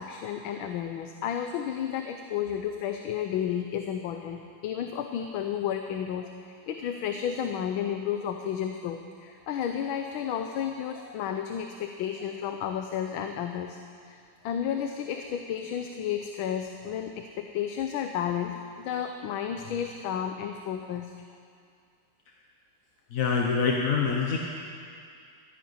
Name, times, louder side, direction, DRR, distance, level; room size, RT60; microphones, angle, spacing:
voice 1, 0.0-13.8 14.0-14.2 14.4-21.1, left 9 dB, 85° left, 5 dB, 1.6 m, -32 dB
voice 2, 23.1-24.4, left 5 dB, 50° left, 0 dB, 1.2 m, -25 dB
13.5 x 10.5 x 9.6 m, 2.3 s
omnidirectional pair, 2.2 m